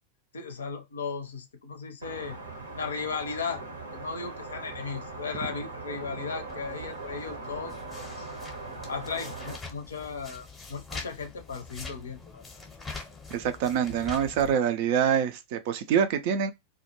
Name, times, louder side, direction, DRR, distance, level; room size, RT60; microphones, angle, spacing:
voice 1, 0.3-2.4 2.7-3.6 3.9-8.3 8.9-12.5, left 5 dB, 70° left, 0.5 m, -36 dB
sound 1, 2.0-9.6, right 3 dB, 75° right, 0.7 m, -40 dB
sound 2, 6.5-14.5, left 4 dB, 10° left, 0.7 m, -44 dB
voice 2, 13.3-16.5, right 8 dB, 50° right, 0.4 m, -25 dB
2.2 x 2.1 x 2.8 m
figure-of-eight pair, 90°, 0 cm